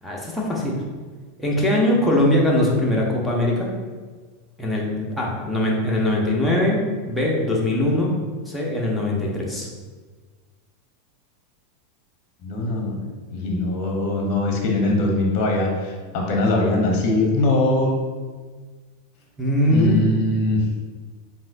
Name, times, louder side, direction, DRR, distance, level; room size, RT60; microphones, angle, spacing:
voice 1, 0.0-0.8 1.4-3.7 4.6-8.1 8.5-9.7 19.4-20.1, left 1 dB, 5° left, -4 dB, 1.0 m, -21 dB
voice 2, 12.4-18.0 19.7-20.6, left 2 dB, 40° left, 0 dB, 0.9 m, -22 dB
7.3 x 2.7 x 2.6 m, 1.4 s
figure-of-eight pair, 85°, 0 cm